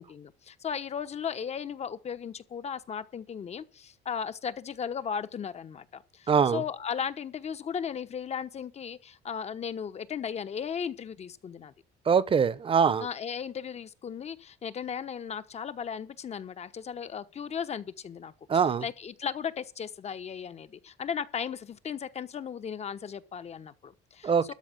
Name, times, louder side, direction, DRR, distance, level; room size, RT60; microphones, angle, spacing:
voice 1, 0.0-11.7 13.0-18.3 18.8-24.5, left 7 dB, 40° left, 1.1 m, -36 dB
voice 2, 6.3-6.6 12.1-13.1 18.5-18.8 24.2-24.5, right 6 dB, 30° right, 0.9 m, -23 dB
13.0 x 5.0 x 9.0 m
cardioid pair, 110°, 17 cm